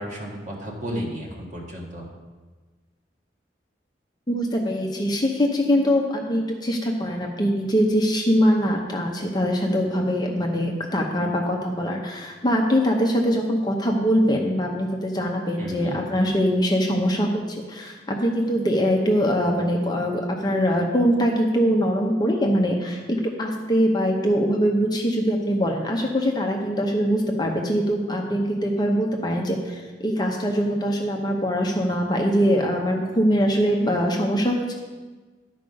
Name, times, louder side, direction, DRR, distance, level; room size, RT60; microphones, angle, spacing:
voice 1, 0.0-2.1 15.6-16.0, equal, 40° right, -2 dB, 1.6 m, -33 dB
voice 2, 4.3-34.8, equal, 20° left, 1 dB, 0.8 m, -23 dB
11.0 x 4.7 x 5.2 m, 1.3 s
head